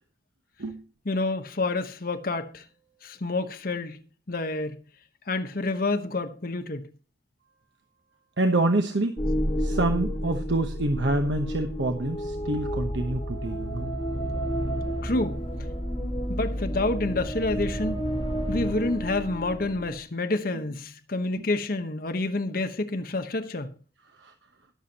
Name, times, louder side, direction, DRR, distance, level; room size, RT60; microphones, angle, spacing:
voice 1, 1.1-2.6 3.0-4.0 4.3-4.8 5.3-6.9 15.0-15.4 16.3-18.0 18.5-23.7, left 2 dB, 50° left, 1.1 m, -28 dB
voice 2, 8.4-9.2 9.6-13.9 20.5-20.6 21.4-21.5 24.0-24.3, right 2 dB, 75° right, 1.1 m, -27 dB
sound 1, 9.2-20.0, equal, 25° left, 2.3 m, -30 dB
19.5 x 7.0 x 2.9 m
head